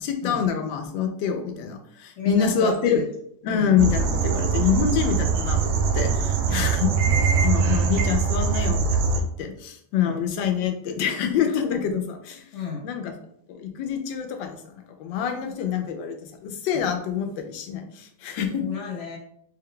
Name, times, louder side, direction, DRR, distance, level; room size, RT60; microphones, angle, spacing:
voice 1, 0.0-3.0 3.4-6.9 7.4-12.5 12.8-13.1 13.5-18.7, left 7 dB, 90° left, 6 dB, 1.3 m, -26 dB
voice 2, 2.2-3.1 3.5-3.8 6.5-6.8 9.9-10.2 12.5-12.9 18.6-19.2, left 4 dB, 65° left, 0 dB, 0.7 m, -33 dB
sound 1, 3.8-9.2, right 5 dB, 70° right, 1.0 m, -22 dB
4.1 x 2.2 x 3.7 m, 0.69 s
omnidirectional pair, 2.0 m